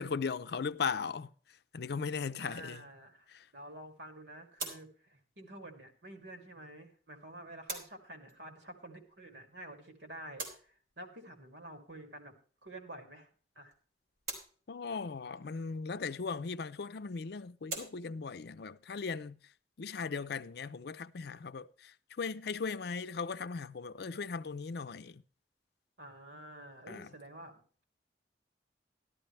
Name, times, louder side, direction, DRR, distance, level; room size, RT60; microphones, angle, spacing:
voice 1, 0.0-1.3 1.7-2.8 3.3-3.5 14.7-19.4 19.8-25.2 26.9-27.1, left 5 dB, 65° left, 0.5 m, -38 dB
voice 2, 2.4-13.7 26.0-27.6, right 1 dB, 85° right, 2.6 m, -50 dB
sound 1, 4.5-21.4, right 2 dB, 60° right, 3.4 m, -50 dB
13.0 x 12.0 x 3.3 m
head